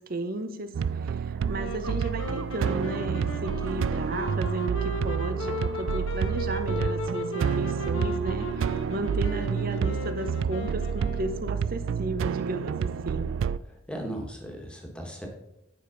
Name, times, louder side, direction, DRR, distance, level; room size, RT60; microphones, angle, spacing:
voice 1, 0.0-13.4, right 2 dB, 50° right, 9 dB, 0.8 m, -34 dB
sound 1, 0.7-13.6, right 6 dB, 80° right, 0.3 m, -29 dB
sound 2, 1.5-11.5, left 1 dB, 85° left, 1.3 m, -36 dB
voice 2, 13.9-15.3, right 1 dB, 5° left, 1 dB, 1.6 m, -37 dB
9.4 x 5.0 x 5.0 m, 0.85 s
head